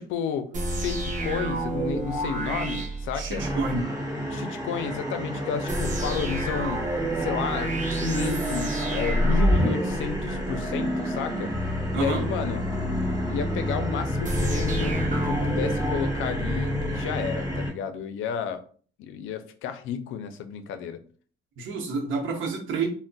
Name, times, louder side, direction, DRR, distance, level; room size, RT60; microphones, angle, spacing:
voice 1, 0.0-3.4 4.3-6.9 7.2-11.5 12.0-12.6 13.3-18.6 19.0-21.0, left 7 dB, 85° left, 9 dB, 0.4 m, -32 dB
sound 1, 0.5-3.8 5.7-10.9 14.2-16.9, right 1 dB, 40° right, 0.7 m, -28 dB
voice 2, 3.1-3.9 11.9-12.2 21.6-22.9, right 4 dB, 75° right, 2 dB, 0.8 m, -29 dB
sound 2, 3.4-17.7, left 1 dB, 20° right, 1.2 m, -30 dB
3.8 x 2.0 x 2.3 m, 0.43 s
cardioid pair, 90°, 20 cm